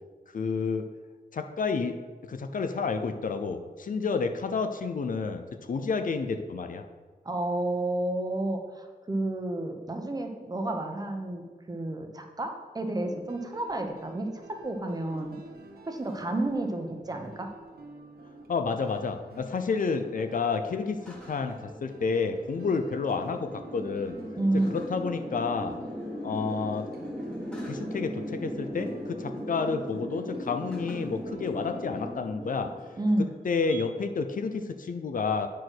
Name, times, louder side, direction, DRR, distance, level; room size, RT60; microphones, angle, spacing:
voice 1, 0.3-0.9 1.3-2.0 2.2-6.8 18.5-24.2 24.7-25.8 26.2-26.9 27.7-32.7 33.4-35.5, left 4 dB, 55° left, 7 dB, 0.6 m, -30 dB
voice 2, 7.2-15.4 15.9-17.5 24.4-24.7 33.0-33.3, right 1 dB, 25° right, 4 dB, 0.9 m, -30 dB
sound 1, 13.0-32.2, right 2 dB, 70° right, 1.1 m, -49 dB
sound 2, 17.6-33.8, equal, 5° left, 1.3 m, -39 dB
9.4 x 4.6 x 6.2 m, 1.4 s
wide cardioid pair, 150°, 16 cm